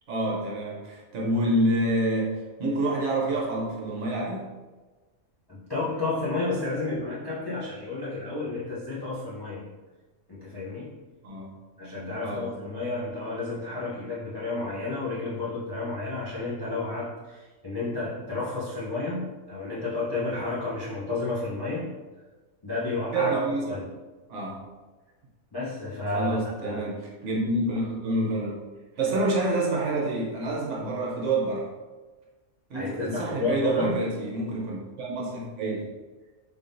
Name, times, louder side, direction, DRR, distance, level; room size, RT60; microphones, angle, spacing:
voice 1, 0.1-4.5 11.2-11.5 12.2-12.5 23.1-23.8 24.3-24.6 26.1-28.6 29.0-31.7 32.7-35.9, right 1 dB, 60° right, -3 dB, 1.1 m, -27 dB
voice 2, 5.5-9.7 10.3-11.0 11.8-22.0 22.6-23.3 23.7-23.9 25.5-27.0 32.7-34.0, left 3 dB, 40° left, -8 dB, 0.3 m, -31 dB
3.5 x 3.5 x 2.6 m, 1.3 s
omnidirectional pair, 1.5 m